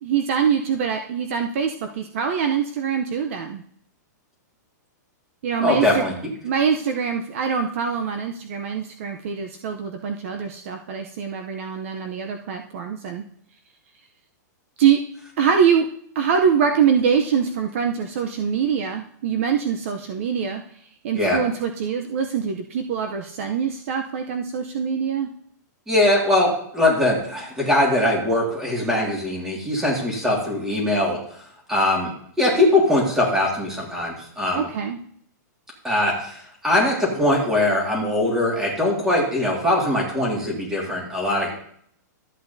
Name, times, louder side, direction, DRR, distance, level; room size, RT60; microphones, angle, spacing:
voice 1, 0.0-3.6 5.4-6.1 6.4-13.2 14.8-15.0 15.4-15.9 16.1-20.6 21.0-25.3 34.5-35.0, right 7 dB, 45° right, 5 dB, 0.6 m, -23 dB
voice 2, 5.6-6.1 21.2-21.4 25.9-31.4 31.7-32.1 32.4-34.7 35.8-41.5, left 1 dB, 5° right, -2 dB, 1.9 m, -21 dB
13.0 x 8.1 x 2.7 m, 0.64 s
hypercardioid pair, 170°, 10 cm